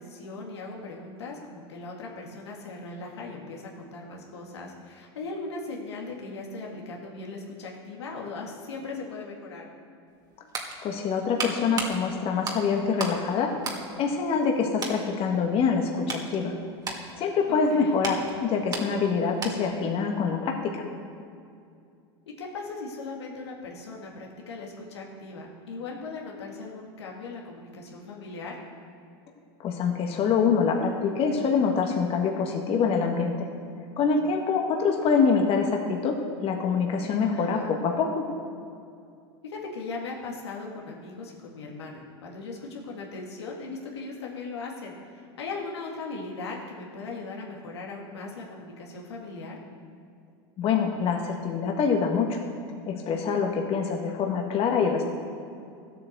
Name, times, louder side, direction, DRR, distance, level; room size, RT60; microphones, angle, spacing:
voice 1, 0.0-9.7 17.5-17.9 22.3-28.6 37.3-37.8 39.4-49.6, left 3 dB, 85° left, -1 dB, 2.2 m, -38 dB
sound 1, 10.1-13.2 13.6-14.5 14.8-15.0 15.6-19.8 20.1-20.3, right 3 dB, 30° right, 2.1 m, -36 dB
voice 2, 10.8-13.5 14.0-16.5 17.2-20.8 29.6-33.5 34.0-38.2 50.6-52.5 52.8-55.1, left 5 dB, 45° left, 2 dB, 1.6 m, -25 dB
13.0 x 8.5 x 6.7 m, 2.4 s
hypercardioid pair, 95°, 14 cm